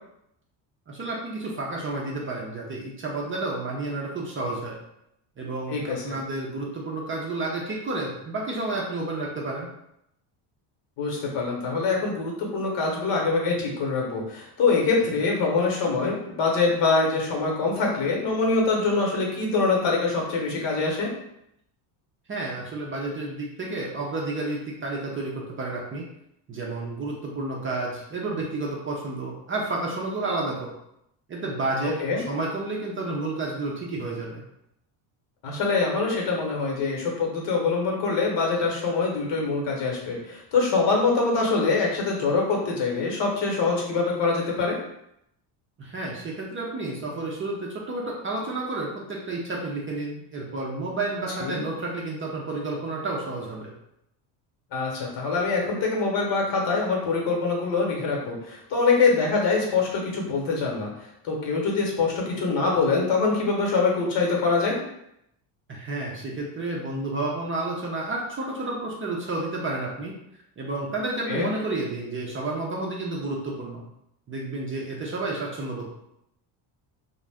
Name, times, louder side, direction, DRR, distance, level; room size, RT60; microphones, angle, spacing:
voice 1, 0.9-4.8 5.4-9.7 15.0-15.1 22.3-26.1 26.5-30.7 31.3-34.4 45.8-53.7 65.7-70.1 70.6-73.9 74.3-75.9, right 2 dB, 25° right, -2 dB, 0.5 m, -31 dB
voice 2, 5.7-6.2 11.0-21.1 31.8-32.2 35.4-44.8 51.4-51.6 54.7-64.8 71.3-71.5, left 4 dB, 60° left, -1 dB, 1.0 m, -24 dB
2.5 x 2.1 x 3.4 m, 0.79 s
cardioid pair, 110°, 48 cm